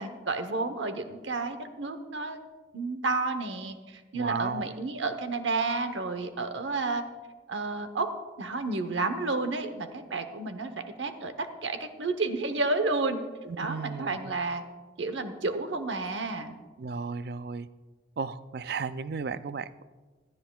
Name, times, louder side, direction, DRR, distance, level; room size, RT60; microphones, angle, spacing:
voice 1, 0.0-2.4 2.7-7.0 7.5-8.1 8.4-10.7 11.0-13.2 13.6-14.6 15.0-16.6, right 3 dB, 85° right, 8 dB, 0.9 m, -31 dB
voice 2, 4.1-4.8 13.4-14.3 16.8-17.7 18.2-19.8, right 5 dB, 55° right, 14 dB, 0.4 m, -34 dB
16.0 x 13.0 x 2.3 m, 1.3 s
head